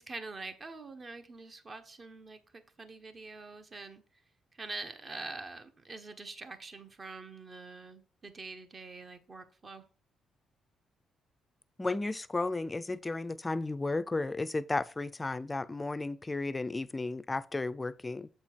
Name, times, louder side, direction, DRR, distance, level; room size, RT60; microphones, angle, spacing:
voice 1, 0.0-4.0 4.5-9.8, right 3 dB, 35° right, 1.2 m, -45 dB
voice 2, 11.8-18.3, left 2 dB, 20° left, 0.5 m, -34 dB
7.7 x 4.4 x 4.4 m
cardioid pair, 90°, 0 cm